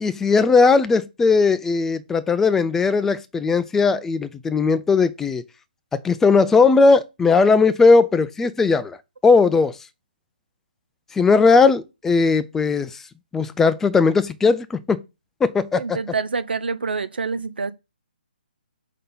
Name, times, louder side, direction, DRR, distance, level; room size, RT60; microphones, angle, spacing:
voice 1, 0.0-5.4 5.9-9.0 9.2-9.8 11.1-12.9 13.3-15.0 15.4-16.0, left 4 dB, 5° left, 0.4 m, -18 dB
voice 2, 15.8-17.7, right 4 dB, 75° right, 0.8 m, -26 dB
5.5 x 3.8 x 5.5 m
figure-of-eight pair, 145°, 5 cm